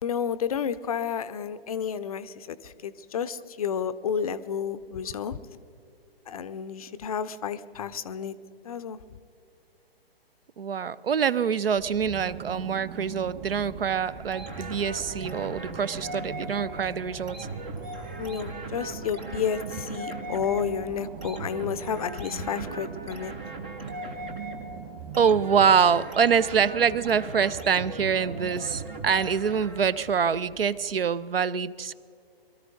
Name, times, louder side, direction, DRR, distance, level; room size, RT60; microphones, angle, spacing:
voice 1, 0.0-5.4 6.3-8.3 8.6-9.0 18.2-23.3, left 7 dB, 40° left, 14 dB, 0.5 m, -31 dB
voice 2, 10.6-17.4 25.2-31.9, right 7 dB, 70° right, 19 dB, 0.6 m, -25 dB
sound 1, 11.8-31.0, right 7 dB, 30° right, 1.5 m, -41 dB
sound 2, 14.3-30.1, right 1 dB, 10° right, 0.3 m, -39 dB
22.5 x 13.5 x 3.9 m, 2.4 s
figure-of-eight pair, 130°, 30 cm